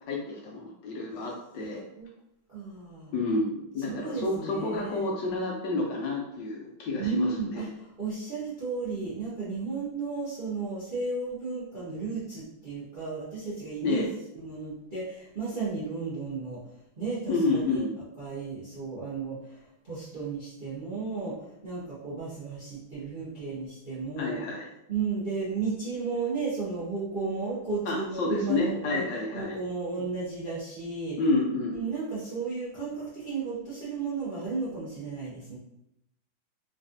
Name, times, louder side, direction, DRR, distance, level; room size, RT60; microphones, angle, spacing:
voice 1, 0.1-1.8 3.1-7.7 13.8-14.1 17.3-17.9 24.2-24.7 27.9-29.6 31.2-31.8, left 2 dB, 70° left, -1 dB, 1.1 m, -29 dB
voice 2, 2.5-3.2 3.9-5.1 7.0-14.1 14.3-16.6 17.0-17.8 18.2-24.4 24.9-29.0 29.3-31.2 31.7-35.6, right 4 dB, 50° right, -9 dB, 0.6 m, -34 dB
3.9 x 2.5 x 2.5 m, 0.81 s
omnidirectional pair, 2.2 m